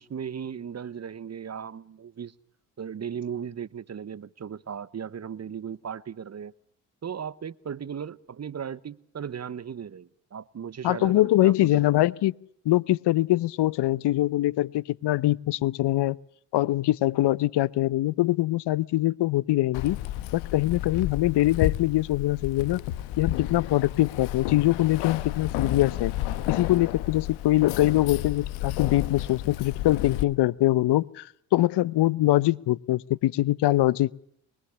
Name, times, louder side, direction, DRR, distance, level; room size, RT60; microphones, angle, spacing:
voice 1, 0.0-2.3 2.8-6.5 7.0-11.9, right 7 dB, 35° right, 1.0 m, -37 dB
voice 2, 10.8-12.3 12.6-16.2 16.5-20.0 20.3-22.8 23.2-26.1 26.5-34.1, left 16 dB, 60° left, 0.9 m, -23 dB
Keys jangling, 19.7-30.2, left 13 dB, 80° left, 1.4 m, -32 dB
23.5 x 21.5 x 7.0 m
hypercardioid pair, 55°, 46 cm